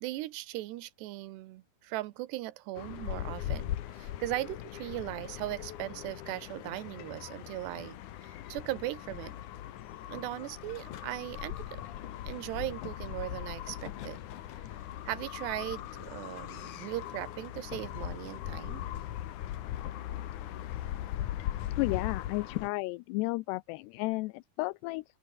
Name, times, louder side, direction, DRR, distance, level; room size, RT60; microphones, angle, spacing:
voice 1, 0.0-8.0 8.2-9.4 10.1-11.8 12.2-14.2 15.1-18.8, right 17 dB, 80° right, 3.0 m, -38 dB
sound 1, 2.8-22.7, left 12 dB, 65° left, 2.1 m, -39 dB
voice 2, 21.8-25.0, left 22 dB, 85° left, 2.7 m, -33 dB
open air
omnidirectional pair, 4.9 m